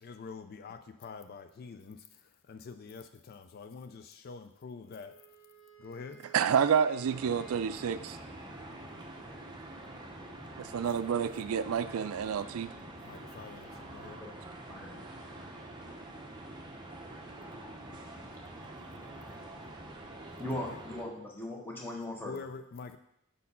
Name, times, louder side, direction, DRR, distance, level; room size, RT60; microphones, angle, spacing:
voice 1, 0.0-5.1 5.8-6.2 13.0-14.2 20.6-20.8 22.2-23.0, left 4 dB, 45° left, 8 dB, 0.4 m, -46 dB
Wind instrument woodwind instrument, 4.8-8.1, right 6 dB, 60° left, 1.3 m, -56 dB
voice 2, 6.3-8.2 10.6-12.7, right 7 dB, 75° right, 14 dB, 0.4 m, -29 dB
sound 1, 7.1-21.0, right 1 dB, 20° right, 0.8 m, -46 dB
voice 3, 20.4-22.4, left 1 dB, 10° left, -2 dB, 1.2 m, -38 dB
5.3 x 4.3 x 5.5 m, 0.74 s
head